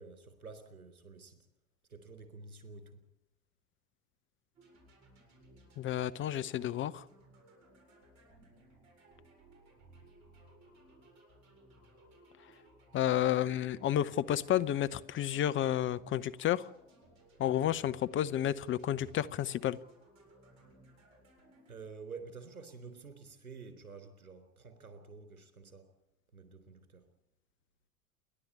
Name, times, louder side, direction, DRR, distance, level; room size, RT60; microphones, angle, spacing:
voice 1, 0.0-1.4 1.9-3.0 21.7-25.9 26.3-27.0, right 4 dB, 80° right, 10 dB, 3.9 m, -49 dB
sound 1, 4.5-21.7, right 2 dB, 40° right, 7.8 m, -60 dB
voice 2, 5.8-7.0 12.9-16.7 17.4-19.8, left 11 dB, 30° left, 13 dB, 0.8 m, -31 dB
28.5 x 11.5 x 8.6 m, 0.84 s
figure-of-eight pair, 85°, 42 cm